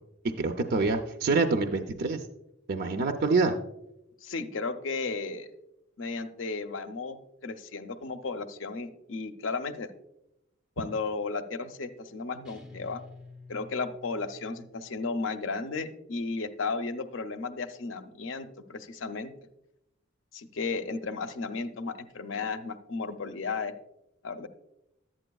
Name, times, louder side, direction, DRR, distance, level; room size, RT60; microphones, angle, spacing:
voice 1, 0.4-2.2 2.7-3.6, right 3 dB, 50° right, 5 dB, 0.4 m, -26 dB
voice 2, 4.2-5.5 6.0-9.9 10.8-13.0 13.5-19.3 20.3-23.7 24.2-24.5, left 4 dB, 65° left, 9 dB, 0.6 m, -34 dB
sound 1, 12.4-15.0, left 3 dB, 5° right, 0.6 m, -50 dB
11.0 x 8.8 x 2.3 m, 0.86 s
head